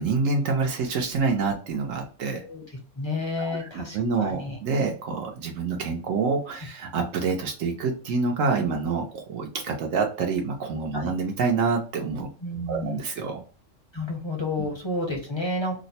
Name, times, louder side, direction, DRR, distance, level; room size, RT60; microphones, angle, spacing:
voice 1, 0.0-2.4 3.4-3.7 3.9-12.3 12.7-13.4 14.6-14.7, right 4 dB, 80° right, 2 dB, 1.0 m, -27 dB
voice 2, 3.0-4.6 10.9-11.1 12.4-13.0 13.9-15.8, left 2 dB, 35° left, 1 dB, 0.4 m, -30 dB
2.8 x 2.0 x 4.1 m, 0.37 s
omnidirectional pair, 1.4 m